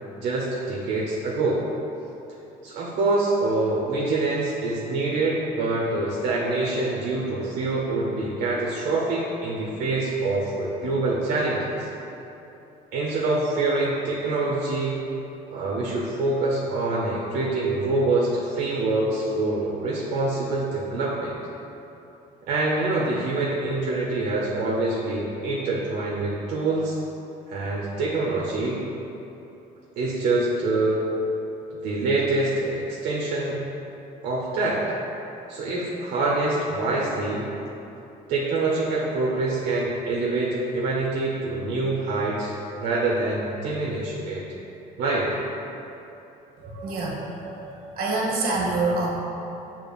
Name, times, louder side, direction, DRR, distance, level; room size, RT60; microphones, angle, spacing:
voice 1, 0.2-1.6 2.6-11.9 12.9-15.0 15.5-21.3 22.5-27.0 27.5-28.8 30.0-31.0 31.8-33.6 34.2-34.8 35.5-37.5 38.3-44.4 45.0-45.3, right 2 dB, 80° right, -6 dB, 0.7 m, -25 dB
voice 2, 46.6-47.6 48.0-49.1, right 2 dB, 60° right, -3 dB, 1.0 m, -26 dB
6.7 x 2.9 x 2.3 m, 3.0 s
cardioid pair, 110°, 17 cm